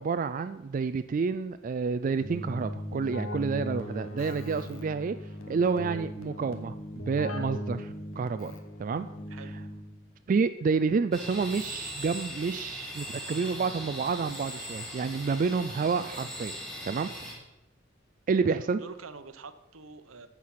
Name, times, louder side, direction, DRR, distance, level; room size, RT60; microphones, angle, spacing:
voice 1, 0.0-5.2 5.5-8.5 8.8-9.1 10.3-16.5 16.9-17.1 18.3-18.8, right 5 dB, 40° right, 11 dB, 0.3 m, -29 dB
Keyboard (musical), 2.2-10.1, equal, 85° left, 1.3 m, -38 dB
sound 1, 11.1-17.3, equal, 5° left, 2.9 m, -40 dB
voice 2, 18.4-20.3, right 4 dB, 85° right, 11 dB, 0.8 m, -45 dB
14.0 x 4.8 x 5.8 m, 0.97 s
head